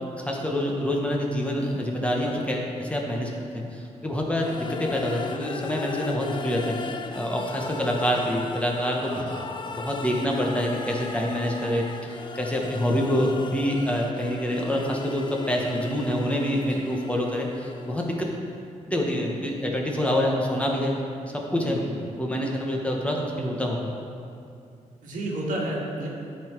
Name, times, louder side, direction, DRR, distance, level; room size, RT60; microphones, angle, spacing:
voice 1, 0.2-9.3 9.7-18.3 18.9-20.9 21.3-21.8 22.2-23.9, equal, 10° left, -1 dB, 1.1 m, -26 dB
sound 1, 4.4-18.2, left 4 dB, 35° left, 0.4 m, -38 dB
voice 2, 9.0-9.5 12.6-12.7 16.7-16.9 21.6-22.0 25.0-26.1, right 1 dB, 90° right, -3 dB, 1.8 m, -32 dB
12.0 x 4.0 x 4.5 m, 2.5 s
cardioid pair, 120°, 13 cm